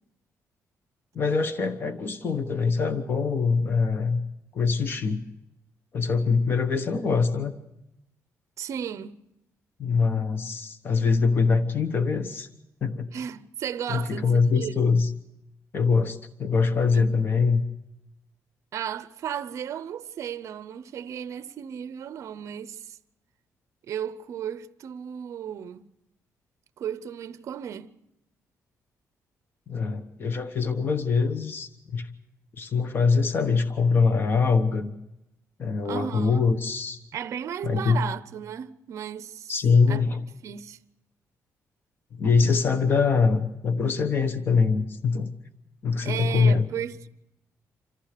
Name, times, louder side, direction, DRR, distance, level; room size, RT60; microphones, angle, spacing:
voice 1, 1.1-4.2 4.5-5.3 5.9-7.5 9.8-12.5 12.8-13.1 13.9-15.1 15.7-17.6 29.7-32.1 32.6-34.9 35.6-37.0 37.6-38.0 39.5-40.2 42.1-45.3 45.8-46.7, left 5 dB, 40° left, 1.1 m, -23 dB
voice 2, 8.6-9.2 13.1-14.7 16.9-17.1 18.7-23.0 23.9-25.8 26.8-27.9 35.8-36.4 37.1-39.5 39.9-40.0 40.4-40.8 46.0-47.1, right 9 dB, 55° right, 0.6 m, -34 dB
26.5 x 15.0 x 6.7 m
wide cardioid pair, 175°, 6 cm